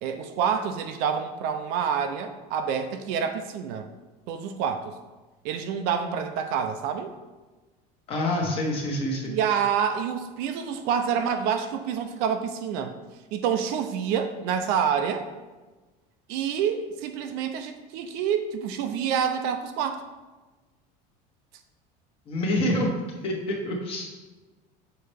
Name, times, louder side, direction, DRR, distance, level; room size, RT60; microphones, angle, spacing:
voice 1, 0.0-3.9 4.3-4.9 5.4-7.1 9.2-12.9 13.3-15.3 16.3-20.0, right 7 dB, 60° right, 7 dB, 0.5 m, -27 dB
voice 2, 8.1-9.3 22.3-24.1, left 1 dB, 30° left, 0 dB, 1.1 m, -27 dB
6.6 x 4.3 x 3.4 m, 1.2 s
cardioid pair, 175°, 18 cm